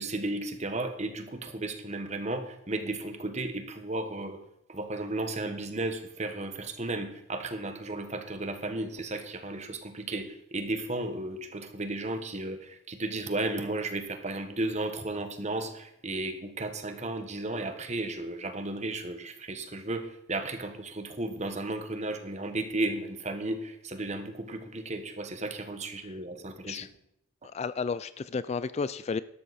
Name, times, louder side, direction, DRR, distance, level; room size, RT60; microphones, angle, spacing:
voice 1, 0.0-4.4 4.7-26.9, right 2 dB, 40° right, 7 dB, 1.4 m, -34 dB
voice 2, 27.5-29.2, left 5 dB, 35° left, 16 dB, 0.3 m, -32 dB
12.5 x 12.0 x 4.2 m, 0.78 s
head